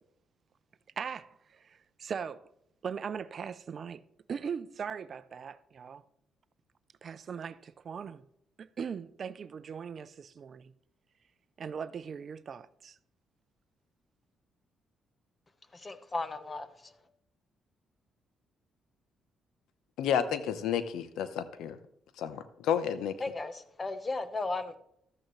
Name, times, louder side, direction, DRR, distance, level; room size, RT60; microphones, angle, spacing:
voice 1, 1.0-2.5 2.8-4.0 4.3-6.0 7.0-8.2 8.6-10.7 11.6-13.0, right 6 dB, 50° right, 0.5 m, -39 dB
voice 2, 15.7-17.0 23.2-24.8, left 3 dB, 25° left, 1.0 m, -36 dB
voice 3, 20.0-21.8 22.2-23.2, left 8 dB, 85° left, 0.8 m, -31 dB
13.0 x 8.8 x 3.2 m
cardioid pair, 90°, 0 cm